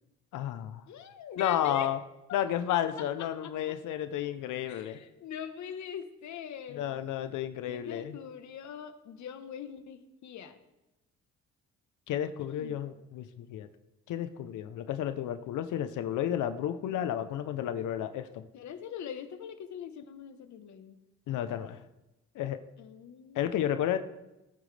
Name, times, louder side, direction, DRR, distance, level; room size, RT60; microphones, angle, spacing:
voice 1, 0.3-0.8 1.4-2.0 2.3-5.0 6.7-8.2 12.1-13.7 14.1-18.5 21.3-21.8 22.3-22.6 23.3-24.0, left 10 dB, 85° left, 10 dB, 0.8 m, -32 dB
voice 2, 0.9-1.9 2.3-2.4 3.2-3.5 4.7-7.0 7.7-10.6 12.4-12.8 18.5-21.0 22.8-23.6, left 8 dB, 70° left, 9 dB, 1.2 m, -42 dB
18.0 x 9.1 x 3.4 m, 0.98 s
cardioid pair, 90°, 30 cm